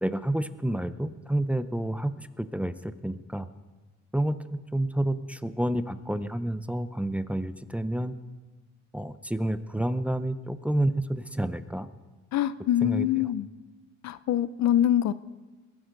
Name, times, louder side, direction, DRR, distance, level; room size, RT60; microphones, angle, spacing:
voice 1, 0.0-3.5 4.1-8.2 8.9-11.9 12.8-13.1, right 1 dB, 5° right, 11 dB, 0.6 m, -29 dB
voice 2, 12.3-13.5 14.0-15.1, left 11 dB, 65° left, 16 dB, 0.6 m, -24 dB
21.5 x 11.0 x 3.9 m, 1.3 s
cardioid pair, 90°, 30 cm